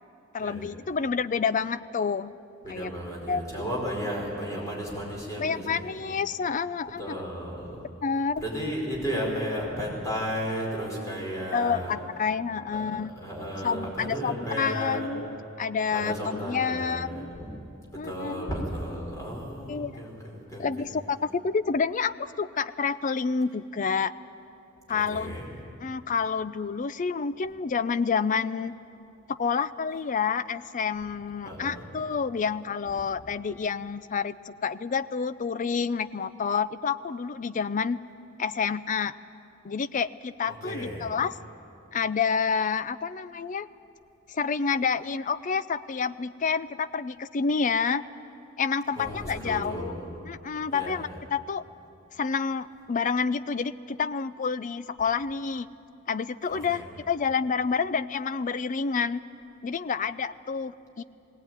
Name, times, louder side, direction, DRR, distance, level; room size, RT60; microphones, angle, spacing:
voice 1, 0.3-2.3 2.7-2.9 3.3-3.4 5.4-7.1 8.0-8.4 11.5-13.1 13.6-15.3 15.6-17.3 18.0-18.5 19.7-20.0 20.6-24.1 24.9-25.3 25.8-28.7 29.3-38.0 38.4-39.1 39.6-41.3 41.9-43.7 44.3-48.0 48.6-49.9 50.2-51.6 52.1-55.7 56.1-59.2 59.6-61.0, left 5 dB, 35° left, 15 dB, 0.4 m, -28 dB
voice 2, 2.6-6.1 7.0-7.8 8.4-11.9 12.7-12.9 13.2-15.1 15.9-17.5 18.0-20.9 24.9-25.5 31.4-31.8 40.6-41.1 49.0-50.1 50.7-51.0 56.5-56.9, equal, 15° left, -3 dB, 5.0 m, -34 dB
19.0 x 18.0 x 9.1 m, 2.8 s
head